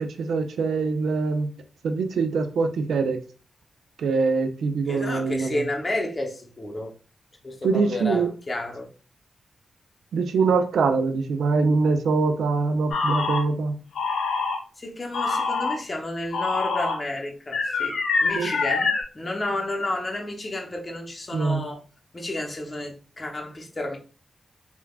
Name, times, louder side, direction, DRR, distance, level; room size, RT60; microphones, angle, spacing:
voice 1, 0.0-1.5 1.8-3.2 4.0-5.6 7.6-8.3 10.1-13.8 18.3-18.5 21.3-21.6, right 4 dB, 85° right, 0.3 m, -23 dB
voice 2, 4.9-6.9 7.4-8.9 14.8-21.8 22.1-24.0, left 1 dB, 35° left, 0.7 m, -31 dB
sound 1, 12.9-13.4 14.0-14.6 15.1-15.8 16.3-17.0 17.5-19.0, left 4 dB, 85° left, 0.6 m, -25 dB
3.3 x 2.2 x 2.3 m
cardioid pair, 50°, 0 cm